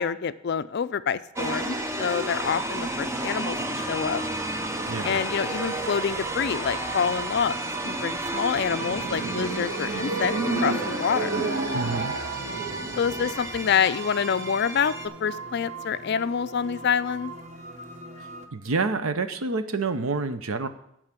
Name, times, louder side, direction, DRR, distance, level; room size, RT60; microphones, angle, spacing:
voice 1, 0.0-4.2 5.0-7.6 7.8-10.3 10.6-11.3 13.0-14.9 15.2-17.3, left 7 dB, 50° left, 13 dB, 0.4 m, -27 dB
sound 1, 1.4-15.1, right 1 dB, 10° right, 0.6 m, -32 dB
sound 2, 3.6-18.5, right 5 dB, 30° right, 1.0 m, -39 dB
voice 2, 4.9-5.2 11.7-12.1 18.5-20.7, right 3 dB, 70° right, 10 dB, 0.8 m, -28 dB
sound 3, 8.3-13.6, right 2 dB, 55° right, 1.8 m, -31 dB
11.0 x 4.9 x 7.3 m, 0.76 s
head